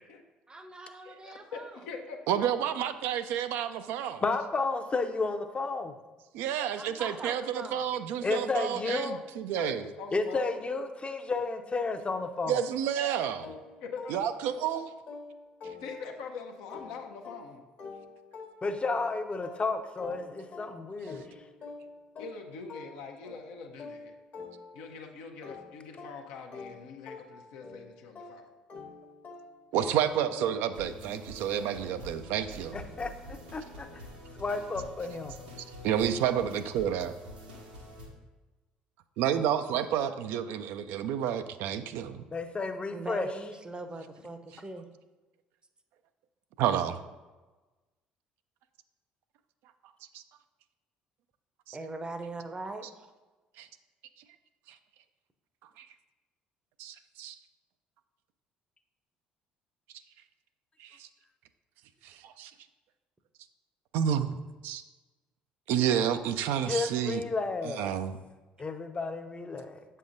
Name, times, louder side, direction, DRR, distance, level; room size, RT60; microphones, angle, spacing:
voice 1, 0.5-1.8 6.7-7.9 42.9-44.9 51.7-53.1, right 2 dB, 20° right, 8 dB, 0.6 m, -41 dB
voice 2, 1.1-2.4 9.1-9.2 9.5-10.6 13.8-14.2 15.8-17.6 22.2-24.1 24.7-28.4, left 5 dB, 70° left, 3 dB, 0.6 m, -43 dB
voice 3, 2.3-4.2 6.3-9.8 12.5-13.5 14.1-14.9 29.7-32.8 35.8-37.1 39.2-42.2 46.6-47.0 50.1-50.2 51.7-51.8 53.6-53.7 55.8-55.9 56.8-57.4 60.8-61.1 62.0-62.5 63.9-64.4 64.6-64.8 65.7-67.2 67.6-68.2, right 9 dB, 65° right, 10 dB, 0.3 m, -30 dB
voice 4, 4.2-6.0 8.2-9.2 10.1-12.6 18.6-21.2 32.7-33.9 34.3-35.3 42.3-43.3 66.6-67.9 68.6-69.8, left 3 dB, 30° left, 7 dB, 0.6 m, -32 dB
sound 1, 13.4-16.3 16.7-25.0 25.4-30.9, left 4 dB, 50° left, 1.1 m, -47 dB
sound 2, 30.7-38.1, equal, 85° right, 1.0 m, -46 dB
7.5 x 5.5 x 2.6 m, 1.2 s
hypercardioid pair, 55°, 4 cm